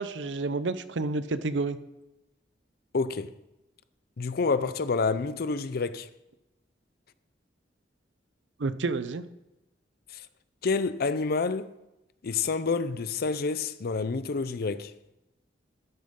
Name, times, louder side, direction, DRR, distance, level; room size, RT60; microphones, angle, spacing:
voice 1, 0.0-1.8 8.6-9.2, right 3 dB, 80° right, 0.6 m, -30 dB
voice 2, 2.9-3.3 4.2-6.1 10.1-10.3 10.6-11.7 12.2-14.9, left 4 dB, 55° left, 0.5 m, -28 dB
12.5 x 9.3 x 3.7 m
head